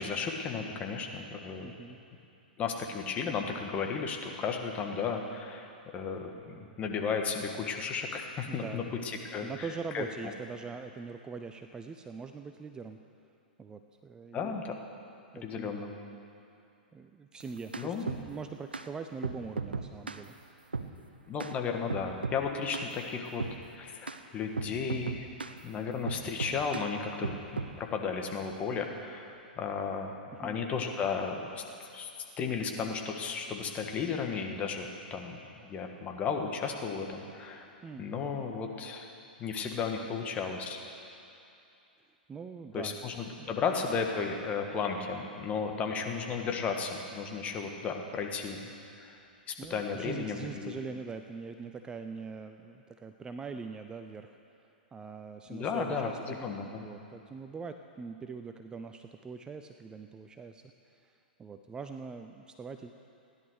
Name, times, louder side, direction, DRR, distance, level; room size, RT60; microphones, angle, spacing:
voice 1, 0.0-1.7 2.6-9.7 9.9-10.3 14.3-14.7 15.4-15.9 17.8-18.0 21.3-23.4 23.7-25.3 25.6-31.6 31.9-32.1 32.4-35.4 35.6-37.7 38.0-39.1 39.4-40.8 42.7-48.6 49.0-49.2 49.5-50.8 55.5-56.9, left 5 dB, 25° left, 3 dB, 1.7 m, -34 dB
voice 2, 1.6-2.0 8.5-8.9 9.4-13.0 13.6-14.6 15.3-15.8 16.9-20.4 30.3-30.6 37.8-38.1 40.0-40.2 42.3-43.0 43.4-43.6 49.6-54.4 54.9-56.4 56.8-62.9, right 5 dB, 15° right, 7 dB, 0.5 m, -42 dB
sound 1, 17.4-18.3 18.7-18.9 19.2-20.2 20.7-20.9 21.4-21.6 21.9-22.4 22.7-22.9 23.4-23.6 24.1-24.2 24.6-25.6 26.1-26.9 27.2-27.8, right 4 dB, 85° right, 0.7 m, -36 dB
16.5 x 11.0 x 6.6 m, 2.7 s
figure-of-eight pair, 110°, 5 cm